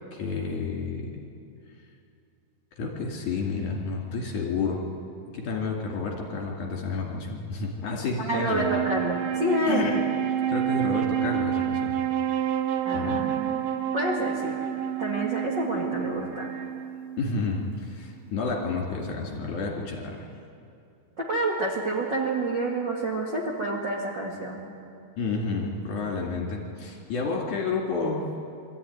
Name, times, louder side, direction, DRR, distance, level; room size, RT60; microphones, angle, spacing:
voice 1, 0.1-1.3 2.7-4.8 5.3-8.7 9.7-10.0 10.5-11.9 12.9-13.2 17.2-20.3 25.2-28.3, left 4 dB, 50° left, -1 dB, 3.5 m, -30 dB
voice 2, 8.2-9.9 12.8-13.7 13.9-14.6 15.0-16.5 21.2-24.6, right 1 dB, 40° right, -4 dB, 1.7 m, -28 dB
Wind instrument woodwind instrument, 8.4-17.9, right 10 dB, 75° right, 2.2 m, -29 dB
24.0 x 14.0 x 9.4 m, 2.5 s
omnidirectional pair, 4.9 m